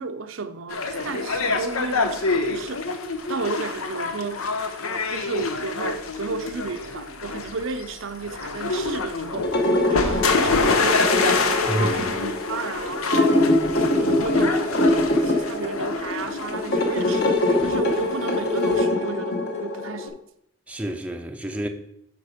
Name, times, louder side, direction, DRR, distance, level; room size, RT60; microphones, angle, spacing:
voice 1, 0.0-2.9 3.3-4.5 5.1-9.6 9.8-13.6 14.0-20.2, right 4 dB, 65° right, 0.6 m, -33 dB
sound 1, 0.7-18.8, left 4 dB, 80° left, 0.9 m, -27 dB
sound 2, 9.3-20.1, left 1 dB, 50° left, 1.5 m, -23 dB
voice 2, 11.7-12.2 20.7-21.7, right 1 dB, 5° right, 0.5 m, -29 dB
8.5 x 5.3 x 5.0 m
head